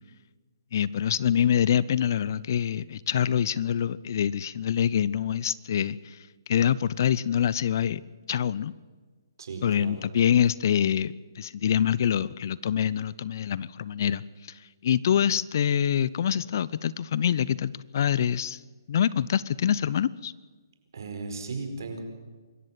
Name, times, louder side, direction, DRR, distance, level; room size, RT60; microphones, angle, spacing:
voice 1, 0.7-8.0 8.3-8.7 9.6-14.2 14.5-18.6 18.9-20.3, left 9 dB, 50° left, 21 dB, 0.6 m, -25 dB
voice 2, 9.4-10.0 20.9-22.0, right 3 dB, 65° right, 5 dB, 4.6 m, -36 dB
25.0 x 14.0 x 7.8 m, 1.4 s
figure-of-eight pair, 140°, 2 cm